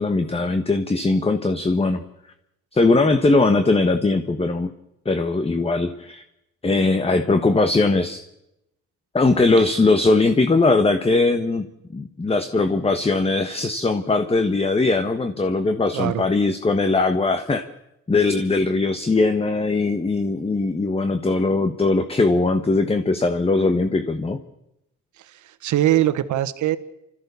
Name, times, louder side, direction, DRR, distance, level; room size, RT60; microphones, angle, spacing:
voice 1, 0.0-2.0 2.7-4.7 5.0-6.2 6.6-8.2 9.1-11.7 11.9-17.7 18.1-24.4, left 3 dB, 20° left, 9 dB, 1.3 m, -20 dB
voice 2, 15.9-16.3 25.6-26.8, right 13 dB, 75° right, 12 dB, 1.3 m, -21 dB
29.5 x 14.0 x 6.9 m, 0.87 s
cardioid pair, 90°, 30 cm